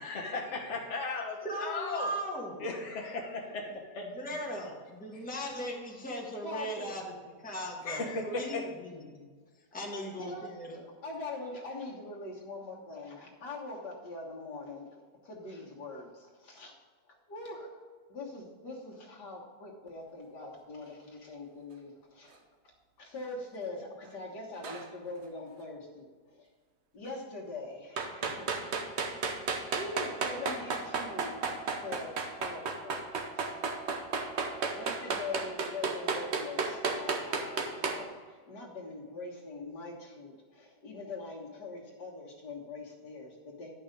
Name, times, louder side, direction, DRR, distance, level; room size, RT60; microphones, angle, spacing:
voice 1, 0.0-2.1 2.6-4.0 7.9-8.6, left 3 dB, 45° left, -2 dB, 1.3 m, -36 dB
voice 2, 1.4-2.6 4.0-7.1 7.4-9.3 9.7-10.9, equal, 5° left, -2 dB, 1.2 m, -38 dB
voice 3, 6.4-6.9 10.2-10.5 11.0-16.8 17.1-17.8 18.1-22.4 23.0-26.5 26.9-28.6 29.0-33.0 33.3-33.6 34.8-43.7, left 3 dB, 75° left, -1 dB, 2.2 m, -43 dB
sound 1, 24.6-24.9 28.0-38.0, right 4 dB, 50° right, 1.0 m, -32 dB
11.0 x 5.6 x 5.2 m, 1.5 s
omnidirectional pair, 1.8 m